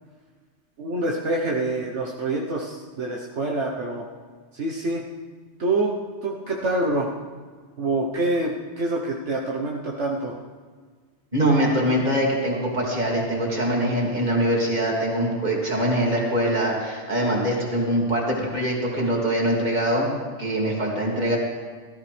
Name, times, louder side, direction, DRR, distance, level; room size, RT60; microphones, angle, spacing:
voice 1, 0.8-4.0 4.5-5.0 5.6-6.0 6.2-7.1 7.8-10.4, right 2 dB, 70° right, -2 dB, 1.4 m, -26 dB
voice 2, 11.3-20.1 20.4-21.4, right 1 dB, 35° right, -3 dB, 2.8 m, -23 dB
17.5 x 14.0 x 3.4 m, 1.5 s
omnidirectional pair, 1.2 m